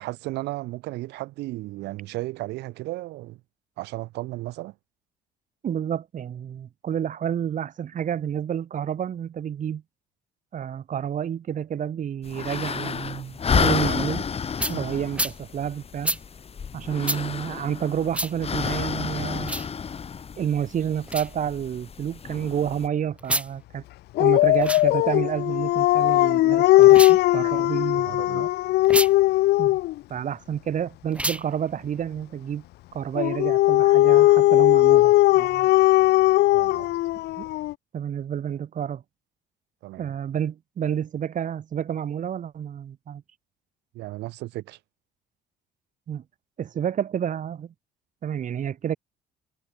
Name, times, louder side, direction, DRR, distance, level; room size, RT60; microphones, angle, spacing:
voice 1, 0.0-3.4 3.8-4.7 28.1-28.5 36.5-36.9 39.8-40.1 43.9-44.8, right 18 dB, 85° right, 6.1 m, -34 dB
voice 2, 5.6-9.8 10.5-14.2 14.7-16.2 16.7-19.6 20.4-23.8 24.2-28.5 29.6-29.8 30.1-32.6 32.9-35.7 37.4-37.5 37.9-39.0 40.0-43.2 46.1-46.2 46.6-47.7 48.2-49.0, right 9 dB, 50° right, 5.9 m, -29 dB
sound 1, 12.2-22.9, left 6 dB, 35° left, 4.5 m, -30 dB
sound 2, 14.6-14.8 15.1-15.4 16.0-16.2 17.0-17.2 18.1-18.3 19.4-19.7 21.0-21.3 23.2-23.5 24.5-24.8 26.8-27.2 28.8-29.1 31.1-31.4, right 1 dB, 5° right, 3.7 m, -28 dB
Dog, 24.2-30.0 33.2-37.7, left 17 dB, 75° left, 0.9 m, -18 dB
cardioid pair, 110°, 17 cm